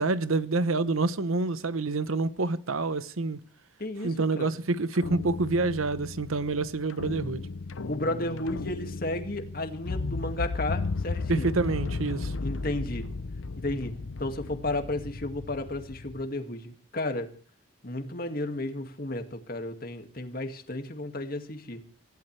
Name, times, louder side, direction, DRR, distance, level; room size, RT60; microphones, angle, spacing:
voice 1, 0.0-3.4 4.0-7.5 11.3-12.3, right 3 dB, 85° right, 1.0 m, -27 dB
voice 2, 3.8-4.5 7.9-11.5 12.4-13.1 13.6-17.3 17.8-21.8, left 1 dB, 45° left, 2.1 m, -33 dB
sound 1, 4.9-16.2, left 3 dB, 70° left, 0.7 m, -35 dB
26.5 x 15.5 x 3.3 m
head